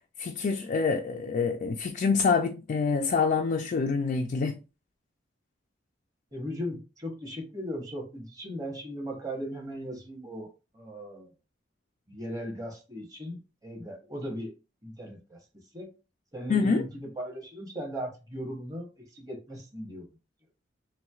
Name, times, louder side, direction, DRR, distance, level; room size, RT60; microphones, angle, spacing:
voice 1, 0.2-4.6 16.5-16.8, left 5 dB, 45° left, 0.3 m, -26 dB
voice 2, 6.3-11.3 12.1-14.5 14.8-15.4 15.7-15.9 16.3-20.0, equal, 20° right, 0.9 m, -38 dB
3.1 x 3.0 x 2.3 m
head